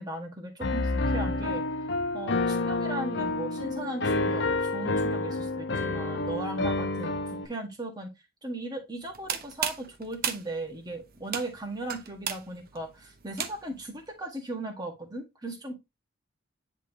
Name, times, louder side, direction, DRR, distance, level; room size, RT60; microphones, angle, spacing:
voice 1, 0.0-1.6 2.1-7.2 7.5-8.1 8.4-15.8, right 2 dB, 20° right, 2 dB, 1.7 m, -37 dB
Piano, 0.6-7.5, left 2 dB, 55° left, 0.8 m, -29 dB
sound 1, 9.0-13.9, right 8 dB, 45° right, 0.8 m, -35 dB
10.0 x 3.7 x 3.0 m, 0.22 s
head